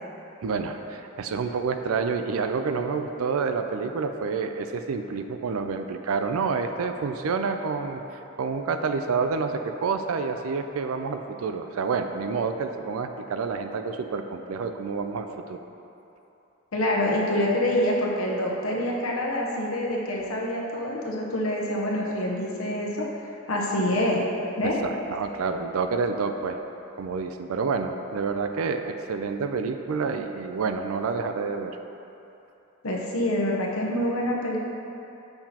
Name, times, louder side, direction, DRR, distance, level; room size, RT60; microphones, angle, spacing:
voice 1, 0.4-8.0 8.4-15.6 24.6-26.6 27.0-31.8, right 5 dB, 90° right, 7 dB, 0.4 m, -28 dB
voice 2, 16.7-23.1 23.5-24.2 24.6-24.8 32.8-34.6, left 1 dB, 85° left, -2 dB, 0.9 m, -26 dB
6.7 x 5.7 x 2.9 m, 2.9 s
head